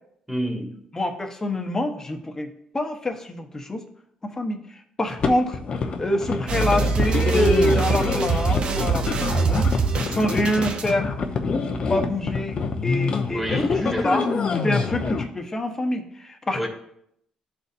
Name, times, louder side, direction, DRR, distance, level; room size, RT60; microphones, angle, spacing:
voice 1, 0.3-0.8 10.1-10.5 13.3-14.4 16.6-16.7, equal, 10° right, 0 dB, 2.0 m, -29 dB
voice 2, 0.9-3.8 4.2-5.6 6.0-9.7 10.1-11.1 11.4-12.6 12.8-14.2 14.6-16.7, left 1 dB, 25° left, 4 dB, 1.1 m, -26 dB
sound 1, 5.2-15.3, left 4 dB, 50° left, 0.8 m, -26 dB
sound 2, 6.5-10.9, right 5 dB, 55° right, 0.8 m, -24 dB
12.0 x 4.1 x 2.7 m, 0.73 s
cardioid pair, 80°, 2 cm